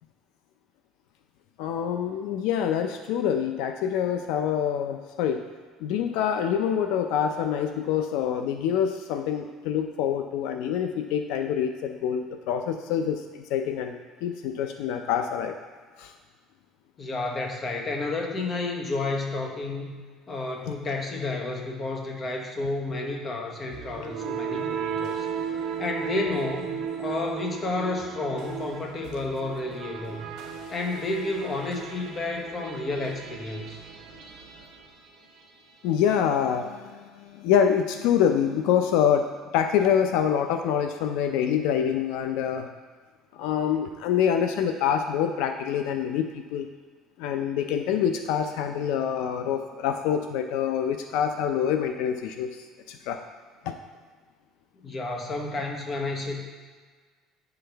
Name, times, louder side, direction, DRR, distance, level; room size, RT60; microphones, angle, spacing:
voice 1, 1.6-5.4 5.8-15.5 16.0-16.1 20.7-20.8 35.8-39.3 39.5-42.7 43.3-46.7 47.2-53.2 53.7-53.8, left 8 dB, 75° left, 6 dB, 0.4 m, -26 dB
voice 2, 17.0-19.9 20.3-30.3 30.7-33.8 54.8-56.4, left 2 dB, 25° left, 1 dB, 1.0 m, -31 dB
sound 1, 23.7-35.6, right 7 dB, 60° right, 0.9 m, -35 dB
9.5 x 5.8 x 3.4 m, 1.5 s
cardioid pair, 165°, 0 cm